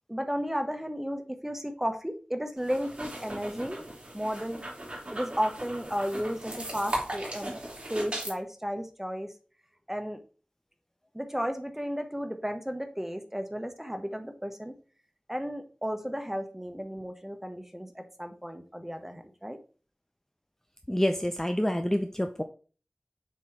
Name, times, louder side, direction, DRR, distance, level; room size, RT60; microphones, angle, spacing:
voice 1, 0.1-3.8 4.1-4.6 5.1-7.6 7.9-9.3 9.9-10.2 11.1-14.7 15.3-19.6, equal, 10° right, 6 dB, 1.0 m, -33 dB
sound 1, 2.6-8.3, right 1 dB, 40° right, 3.0 m, -38 dB
voice 2, 20.9-22.4, equal, 10° left, 6 dB, 0.5 m, -27 dB
7.3 x 3.0 x 4.4 m, 0.38 s
wide cardioid pair, 50°, 3 cm